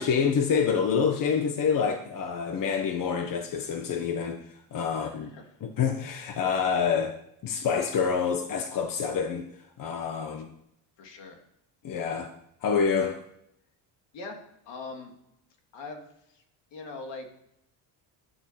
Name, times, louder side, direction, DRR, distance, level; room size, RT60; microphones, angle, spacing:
voice 1, 0.0-4.4 4.7-5.3 5.6-7.2 7.4-9.4 9.8-10.5 11.8-12.3 12.6-13.2, left 6 dB, 45° left, 1.3 m, -27 dB
voice 2, 4.9-5.6 11.0-11.4 14.1-14.4 14.6-15.1 15.7-16.4 16.7-17.5, left 3 dB, 70° left, 3.2 m, -42 dB
12.0 x 12.0 x 7.6 m
cardioid pair, 170°, 45 cm